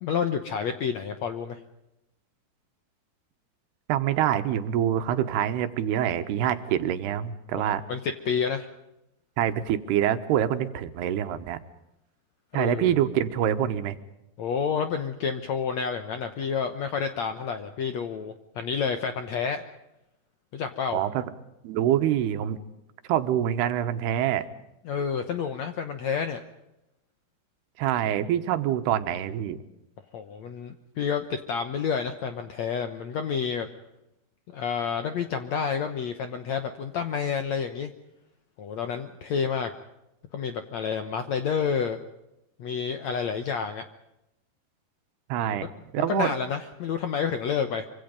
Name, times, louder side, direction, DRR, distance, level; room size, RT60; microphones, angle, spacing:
voice 1, 0.0-1.6 7.5-7.6 7.9-8.7 12.5-13.0 14.4-19.6 20.5-21.0 24.8-26.4 30.1-33.7 34.5-37.9 38.6-39.7 40.3-42.0 42.6-43.8 45.5-45.7 46.0-47.9, left 6 dB, 70° left, 8 dB, 1.7 m, -29 dB
voice 2, 3.9-7.8 9.4-11.6 12.5-14.0 20.9-21.3 21.6-22.6 23.1-24.4 27.8-29.6 45.3-46.3, right 11 dB, 85° right, 10 dB, 3.2 m, -25 dB
25.0 x 25.0 x 5.3 m, 0.89 s
omnidirectional pair, 4.6 m